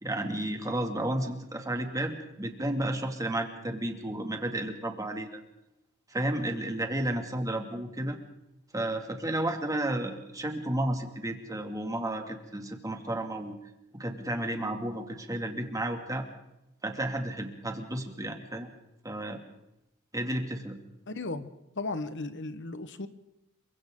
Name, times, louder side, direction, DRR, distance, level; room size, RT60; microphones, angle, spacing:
voice 1, 0.0-5.4 6.1-8.2 8.7-13.6 13.9-16.3 16.8-18.7 19.0-19.4 20.1-20.8, right 1 dB, 15° right, 4 dB, 2.5 m, -32 dB
voice 2, 21.1-21.5 21.8-23.1, left 3 dB, 60° left, 12 dB, 1.3 m, -35 dB
28.0 x 24.0 x 3.9 m, 0.89 s
head